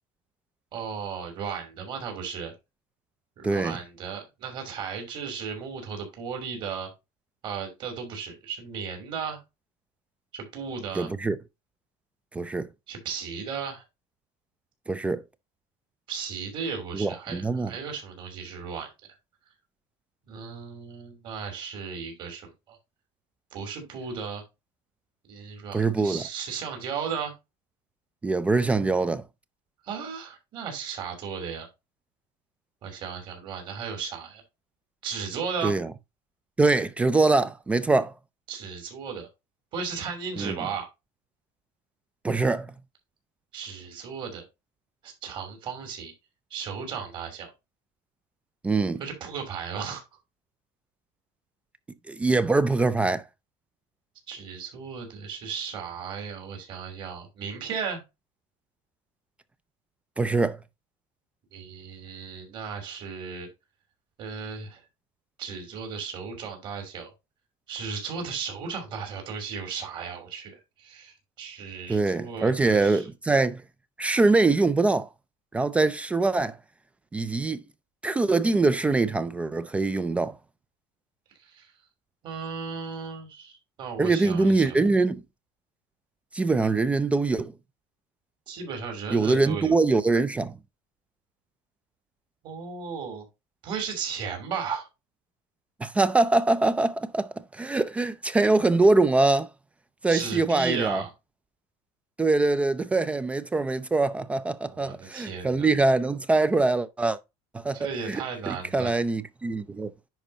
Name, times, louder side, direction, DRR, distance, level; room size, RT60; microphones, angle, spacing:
voice 1, 0.7-2.5 3.4-6.9 7.4-9.4 10.3-11.1 12.9-13.8 16.1-18.9 20.3-22.8 23.5-24.4 25.3-27.3 29.8-31.7 32.8-34.4 35.0-35.7 38.5-39.3 39.7-40.8 43.5-44.4 45.0-46.1 46.5-47.5 49.0-50.0 54.3-58.0 61.5-63.5 64.2-64.8 65.4-67.1 67.7-73.0 81.4-81.7 82.2-84.8 88.5-89.8 92.4-93.2 93.6-94.9 100.1-101.1 104.7-105.7 107.7-109.0, right 6 dB, 40° right, 3.0 m, -35 dB
voice 2, 3.4-3.8 11.0-11.4 12.3-12.7 14.9-15.2 16.9-17.7 25.7-26.2 28.2-29.2 35.6-35.9 36.6-38.1 40.4-40.6 42.2-42.7 48.6-49.0 52.1-53.2 60.2-60.6 71.9-73.6 74.0-75.1 75.5-76.6 77.1-77.7 78.0-80.4 84.0-85.2 86.3-87.5 89.1-90.6 95.8-99.5 100.0-101.0 102.2-107.2 107.5-109.9, right 3 dB, 10° right, 0.3 m, -23 dB
10.0 x 4.5 x 2.7 m
cardioid pair, 165°, 13 cm